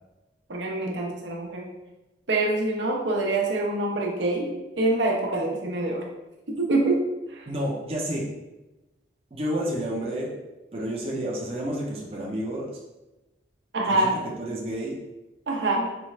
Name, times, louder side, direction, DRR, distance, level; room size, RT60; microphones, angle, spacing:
voice 1, 0.5-1.7 2.3-6.1 6.5-7.0 7.4-7.5 13.7-14.1 15.5-15.9, right 2 dB, 85° right, -1 dB, 0.8 m, -25 dB
voice 2, 7.5-8.3 9.3-10.3 10.7-12.8 13.9-15.0, equal, 30° right, -4 dB, 0.5 m, -30 dB
4.4 x 2.4 x 3.1 m, 1.0 s
head